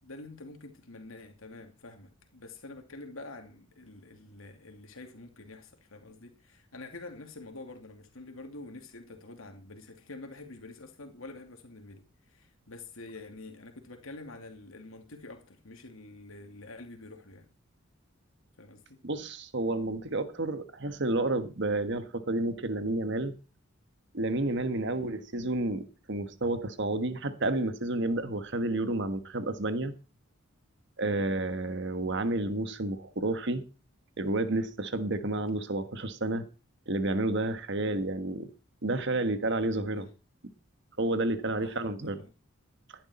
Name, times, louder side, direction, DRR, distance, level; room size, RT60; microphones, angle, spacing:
voice 1, 0.0-17.5 18.6-19.0 24.9-25.2 37.8-38.1 39.9-40.1 41.6-42.3, left 2 dB, 85° left, 2.6 m, -47 dB
voice 2, 19.0-23.3 24.1-25.8 26.1-29.9 31.0-33.6 34.2-36.4 36.9-38.5 38.8-40.1 41.0-42.2, right 2 dB, 60° right, 1.5 m, -30 dB
14.5 x 11.0 x 4.3 m
head